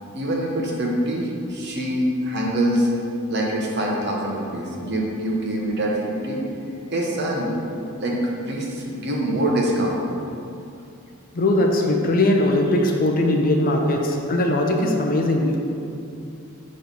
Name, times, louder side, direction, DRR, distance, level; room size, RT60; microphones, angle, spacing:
voice 1, 0.1-2.9 3.3-6.4 6.9-7.5 8.0-8.2 8.5-10.0, right 1 dB, 50° right, -2 dB, 0.9 m, -24 dB
voice 2, 11.3-15.6, left 1 dB, 40° left, 1 dB, 0.5 m, -20 dB
6.2 x 3.2 x 5.3 m, 2.7 s
head